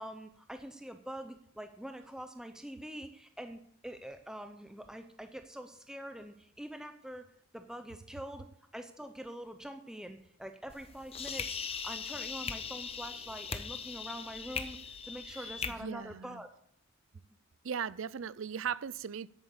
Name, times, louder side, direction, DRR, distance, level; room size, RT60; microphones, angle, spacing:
voice 1, 0.0-7.3 7.5-8.5 8.7-16.5, equal, 5° right, 0.7 m, -45 dB
sound 1, 10.7-15.7, left 6 dB, 30° left, 0.9 m, -40 dB
voice 2, 15.3-16.4 17.6-19.3, right 7 dB, 65° right, 0.4 m, -38 dB
10.5 x 8.8 x 7.2 m
head